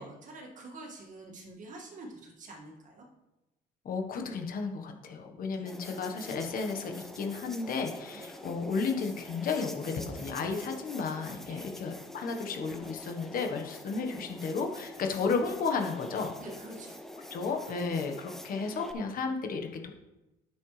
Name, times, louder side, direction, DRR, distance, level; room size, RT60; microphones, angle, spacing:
voice 1, 0.0-3.0 5.5-5.7 8.1-8.3 11.4-11.8 16.4-17.0, right 2 dB, 50° right, 0 dB, 2.1 m, -47 dB
voice 2, 3.8-16.4 17.3-19.9, left 4 dB, 55° left, 4 dB, 1.3 m, -33 dB
sound 1, 5.7-18.9, left 1 dB, ahead, 0.8 m, -46 dB
9.5 x 7.6 x 3.3 m, 0.99 s
cardioid pair, 110°, 17 cm